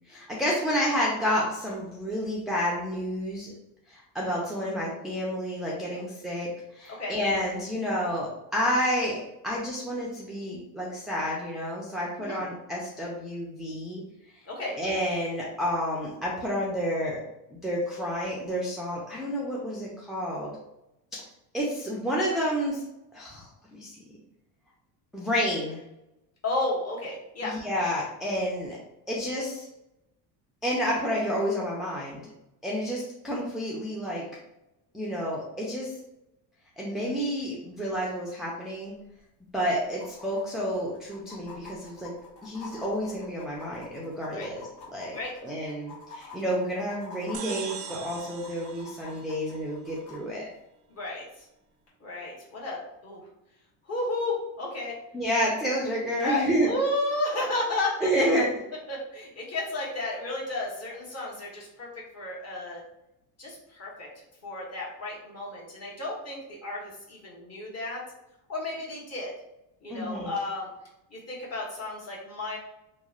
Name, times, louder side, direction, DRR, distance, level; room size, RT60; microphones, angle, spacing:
voice 1, 0.1-3.5 3.9-14.0 14.8-17.2 17.5-20.5 21.1-21.2 21.5-22.8 23.1-24.0 25.1-25.8 27.4-28.8 29.1-29.7 30.6-32.2 32.6-34.2 34.9-35.9 36.8-38.9 39.5-42.1 42.4-50.4 55.1-56.7 58.0-58.5 69.9-70.3, equal, ahead, -5 dB, 0.4 m, -30 dB
voice 2, 14.5-14.8 26.4-27.5 44.3-44.5 45.1-45.3 50.9-51.5 52.0-53.2 53.9-54.9 56.2-58.3 58.9-61.9 62.1-62.8 63.4-68.0 68.5-69.3 69.8-70.7 71.1-72.6, left 2 dB, 30° left, -4 dB, 1.1 m, -32 dB
sound 1, 38.9-39.0 39.2-39.3 39.9-50.2 51.9-52.0, left 3 dB, 60° left, 1.4 m, -47 dB
sound 2, 47.3-49.9, right 8 dB, 60° right, 0.5 m, -41 dB
3.1 x 2.3 x 2.4 m, 0.88 s
supercardioid pair, 95°, 49 cm